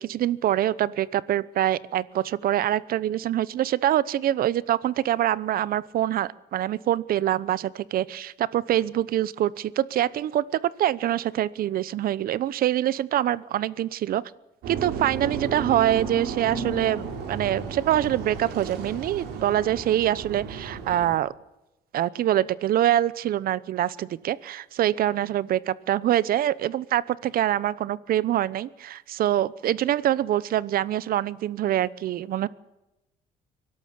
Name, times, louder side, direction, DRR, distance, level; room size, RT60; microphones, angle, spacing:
voice 1, 0.0-14.2 14.7-21.3 21.9-32.5, right 12 dB, 60° right, 20 dB, 0.9 m, -25 dB
sound 1, 14.6-21.1, right 5 dB, 80° right, 4.2 m, -33 dB
24.0 x 12.5 x 8.8 m, 0.95 s
cardioid pair, 110°, 17 cm